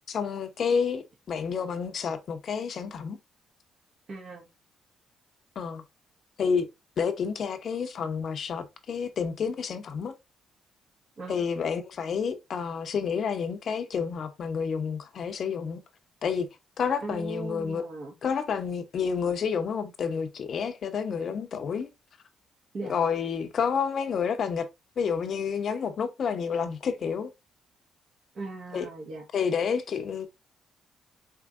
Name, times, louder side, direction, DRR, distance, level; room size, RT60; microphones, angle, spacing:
voice 1, 0.1-3.2 5.6-5.8 6.4-6.7 7.0-10.1 11.3-15.8 16.2-16.5 16.8-17.9 18.2-21.9 22.8-24.7 25.0-27.3 28.7-28.9 29.3-30.3, left 6 dB, 55° left, 0.7 m, -29 dB
voice 2, 4.1-4.5 11.2-11.5 17.0-18.1 22.7-22.9 28.3-29.2, right 3 dB, 50° right, 1.4 m, -38 dB
4.6 x 3.1 x 2.4 m
cardioid pair, 90°, 0 cm